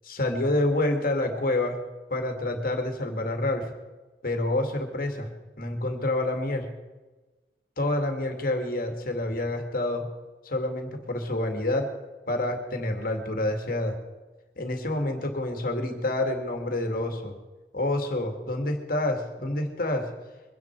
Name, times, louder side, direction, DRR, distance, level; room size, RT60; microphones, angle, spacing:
voice 1, 0.0-1.8 2.1-3.7 4.2-5.3 5.5-6.7 7.8-10.1 10.4-11.9 12.3-14.0 14.6-17.3 17.7-20.1, left 1 dB, 50° left, 4 dB, 2.2 m, -28 dB
23.0 x 10.0 x 4.6 m, 1.2 s
head